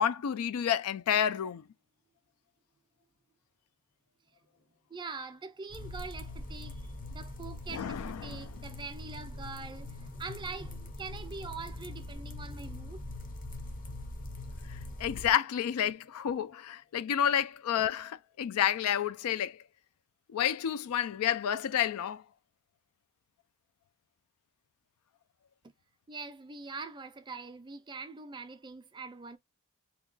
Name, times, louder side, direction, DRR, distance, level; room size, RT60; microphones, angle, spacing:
voice 1, 0.0-1.6 7.7-8.4 14.7-19.6 20.3-22.2, left 9 dB, 80° left, 0.4 m, -30 dB
voice 2, 4.9-13.0 26.1-29.4, right 4 dB, 20° right, 0.4 m, -43 dB
sound 1, 5.7-15.3, left 2 dB, 40° left, 0.7 m, -42 dB
2.9 x 2.2 x 3.8 m
head